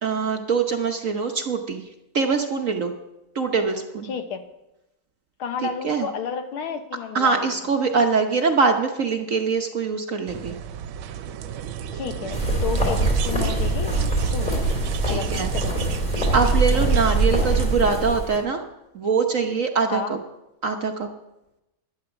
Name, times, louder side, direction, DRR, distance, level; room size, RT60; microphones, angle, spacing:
voice 1, 0.0-1.8 2.1-2.9 3.3-4.1 5.6-6.1 7.1-10.6 15.1-15.5 16.3-18.6 18.9-20.2 20.6-21.1, right 5 dB, 50° right, 5 dB, 1.0 m, -23 dB
voice 2, 4.0-4.4 5.4-7.5 11.9-13.9 14.3-14.8 15.1-15.9 19.9-20.2, left 7 dB, 85° left, 7 dB, 2.1 m, -31 dB
sound 1, 10.3-17.8, right 8 dB, 80° right, 1.5 m, -32 dB
sound 2, 12.3-18.4, right 2 dB, 20° left, 4.0 m, -23 dB
12.0 x 10.5 x 7.1 m, 0.94 s
omnidirectional pair, 2.3 m